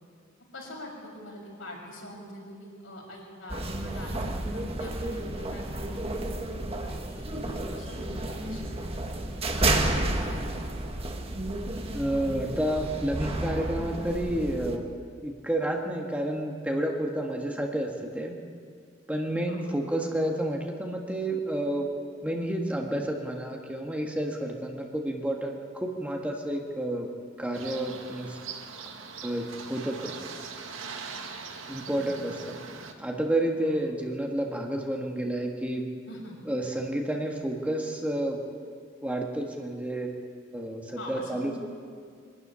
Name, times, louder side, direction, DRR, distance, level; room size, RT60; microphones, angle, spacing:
voice 1, 0.5-6.5 6.8-9.2 19.5-19.6 31.8-32.3 33.6-33.8 36.1-36.3 40.9-41.6, left 1 dB, 80° left, -2 dB, 6.4 m, -45 dB
sound 1, 3.5-14.8, right 2 dB, 30° right, 1.6 m, -31 dB
voice 2, 11.9-14.9 15.2-18.4 19.1-21.9 22.2-27.1 27.4-28.4 29.2-30.1 31.7-32.6 33.0-35.9 36.5-38.4 39.0-40.1 40.5-41.6, right 1 dB, 5° right, 1 dB, 1.7 m, -30 dB
sound 2, 27.5-32.9, right 5 dB, 90° right, 1.9 m, -41 dB
23.0 x 12.5 x 10.0 m, 2.2 s
head